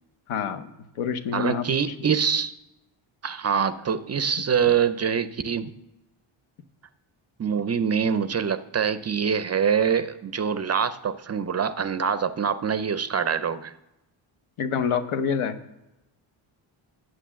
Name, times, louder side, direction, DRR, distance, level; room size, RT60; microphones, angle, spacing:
voice 1, 0.3-1.7 14.6-15.6, left 7 dB, 80° left, 10 dB, 1.0 m, -27 dB
voice 2, 1.3-2.5 3.2-5.7 7.4-13.7, right 7 dB, 35° right, 13 dB, 0.4 m, -24 dB
9.3 x 6.3 x 7.3 m, 0.95 s
wide cardioid pair, 140°, 49 cm